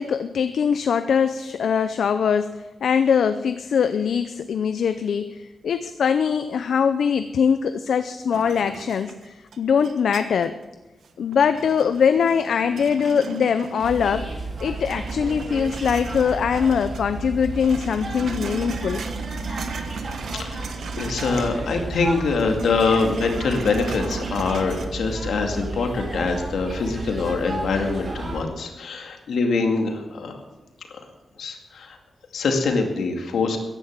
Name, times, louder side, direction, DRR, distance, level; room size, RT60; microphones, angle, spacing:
voice 1, 0.0-10.6 11.2-14.3 14.6-19.0 21.0-21.1, left 7 dB, 70° left, 10 dB, 0.6 m, -22 dB
sound 1, 8.3-10.6 11.0-14.3 14.6-17.1 17.3-21.6 21.9-24.9, right 4 dB, 70° right, 1.4 m, -37 dB
sound 2, 13.8-28.4, right 2 dB, 35° right, 3.5 m, -33 dB
voice 2, 21.0-30.4 31.4-32.0 32.3-33.6, left 4 dB, 90° left, 3 dB, 2.3 m, -24 dB
14.5 x 10.5 x 7.5 m, 1.1 s
wide cardioid pair, 180°, 0 cm